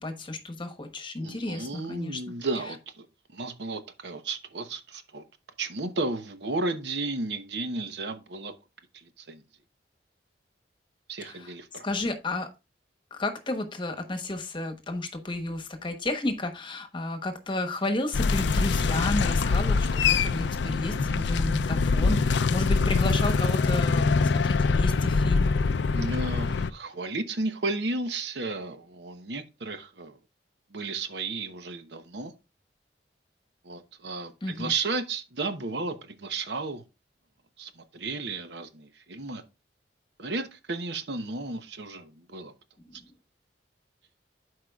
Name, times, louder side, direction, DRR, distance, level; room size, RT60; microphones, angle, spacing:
voice 1, 0.0-2.2 11.2-12.5 13.1-25.5 34.4-34.7 42.8-43.1, left 2 dB, 25° left, 1.0 m, -32 dB
voice 2, 1.2-5.2 5.6-8.5 8.9-9.4 11.1-11.8 21.0-21.4 25.9-30.2 30.7-32.3 33.6-36.8 37.6-39.4 40.2-42.5, right 3 dB, 70° right, 0.9 m, -33 dB
sound 1, 18.1-26.7, left 4 dB, 80° left, 0.4 m, -24 dB
12.0 x 4.8 x 2.4 m
head